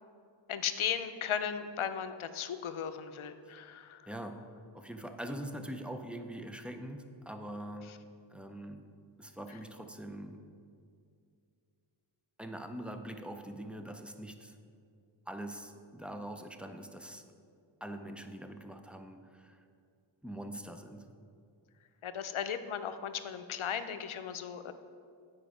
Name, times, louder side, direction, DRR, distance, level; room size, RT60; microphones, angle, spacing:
voice 1, 0.5-4.0 22.0-24.7, left 8 dB, 80° left, 10 dB, 0.6 m, -36 dB
voice 2, 4.1-4.4 4.7-8.0 8.3-8.9 9.2-10.4 12.4-14.6 15.3-17.2 17.8-19.6 20.2-21.0, right 1 dB, 5° right, 6 dB, 0.4 m, -43 dB
9.0 x 4.6 x 4.9 m, 2.4 s
wide cardioid pair, 80°, 48 cm